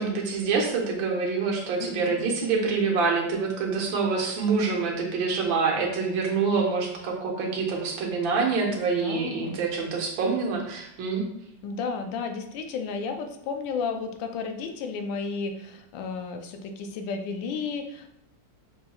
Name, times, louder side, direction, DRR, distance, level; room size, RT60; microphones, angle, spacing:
voice 1, 0.0-11.2, right 4 dB, 85° right, 0 dB, 1.6 m, -26 dB
voice 2, 1.8-2.2 9.0-9.6 11.6-18.1, left 5 dB, 85° left, 5 dB, 1.3 m, -33 dB
6.3 x 2.2 x 2.9 m, 0.78 s
omnidirectional pair, 2.0 m